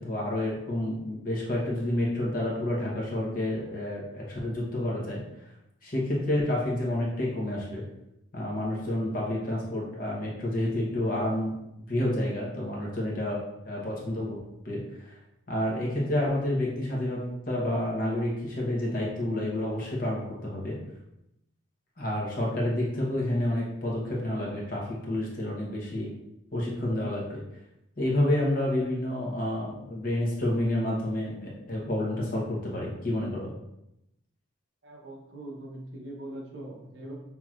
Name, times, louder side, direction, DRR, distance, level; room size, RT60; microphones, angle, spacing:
voice 1, 0.0-5.2 5.8-7.8 8.3-11.6 11.9-14.4 14.6-15.1 15.5-17.2 17.5-20.8 22.0-26.1 26.5-27.4 28.0-33.5, left 1 dB, 45° left, -4 dB, 1.0 m, -29 dB
voice 2, 34.8-37.1, right 1 dB, 55° right, -2 dB, 0.9 m, -41 dB
5.9 x 2.9 x 2.4 m, 0.86 s
head